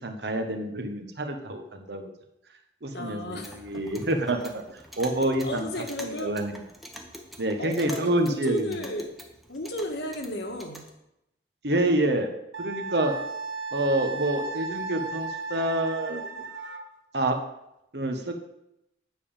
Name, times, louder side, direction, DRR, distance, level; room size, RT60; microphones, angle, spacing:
voice 1, 0.0-2.1 2.8-5.7 6.0-6.5 7.4-8.8 11.6-12.3 12.6-13.1 13.7-16.2 17.1-17.4 17.9-18.3, right 1 dB, 65° right, 5 dB, 1.2 m, -27 dB
voice 2, 2.9-3.8 5.4-6.3 7.6-9.1 9.5-10.8, equal, 65° left, 3 dB, 1.6 m, -34 dB
Clock, 3.2-10.9, equal, ahead, 0.9 m, -45 dB
Wind instrument woodwind instrument, 12.5-16.9, right 4 dB, 90° right, 1.0 m, -35 dB
9.4 x 5.3 x 7.2 m, 0.84 s
head